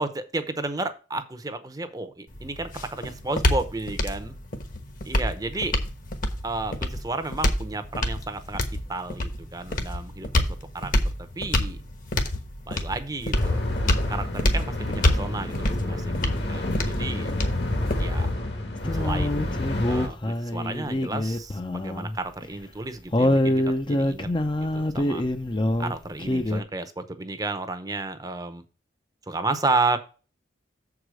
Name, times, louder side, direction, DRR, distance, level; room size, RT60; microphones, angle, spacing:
voice 1, 0.0-4.3 5.0-5.7 6.4-8.6 8.9-10.4 10.7-10.9 11.4-11.8 12.7-13.6 14.1-17.3 18.0-18.3 18.9-19.6 19.9-24.3 24.6-25.2 25.8-28.6 29.3-30.0, right 3 dB, 20° right, 10 dB, 0.7 m, -32 dB
sound 1, 2.3-18.3, left 1 dB, 45° left, 1.1 m, -27 dB
sound 2, 13.3-20.1, left 2 dB, 65° left, 1.6 m, -29 dB
sound 3, 18.8-22.2 22.4-22.5 23.1-25.9 26.2-26.6, left 1 dB, 25° left, 0.6 m, -25 dB
7.2 x 4.8 x 6.2 m, 0.35 s
head